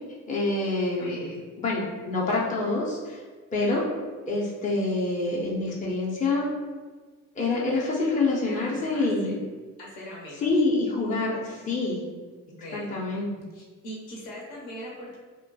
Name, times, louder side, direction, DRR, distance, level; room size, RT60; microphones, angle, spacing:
voice 1, 0.3-1.2 1.6-3.2 3.5-3.8 4.3-6.4 7.4-9.4 10.4-12.1 12.7-13.3, left 3 dB, 20° left, -4 dB, 0.6 m, -26 dB
voice 2, 1.0-1.4 8.4-9.3 9.8-10.5 12.6-13.0 13.5-15.2, equal, 60° left, -3 dB, 0.8 m, -40 dB
2.8 x 2.1 x 2.7 m, 1.4 s
figure-of-eight pair, 40°, 44 cm